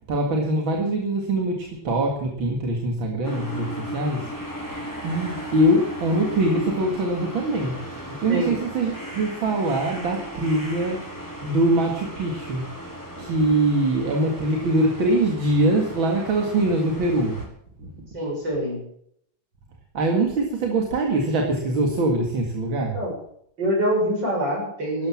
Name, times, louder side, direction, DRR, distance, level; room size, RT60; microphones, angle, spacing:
voice 1, 0.1-4.3 4.7-11.1 11.4-12.7 13.2-17.5 17.8-18.1 19.9-23.0, right 1 dB, 85° right, 2 dB, 2.8 m, -23 dB
sound 1, 3.2-17.5, equal, 10° left, 4.4 m, -36 dB
voice 2, 18.1-18.9 22.8-23.1 23.6-25.1, equal, 65° right, -1 dB, 7.8 m, -25 dB
13.5 x 12.0 x 7.4 m, 0.69 s
omnidirectional pair, 2.1 m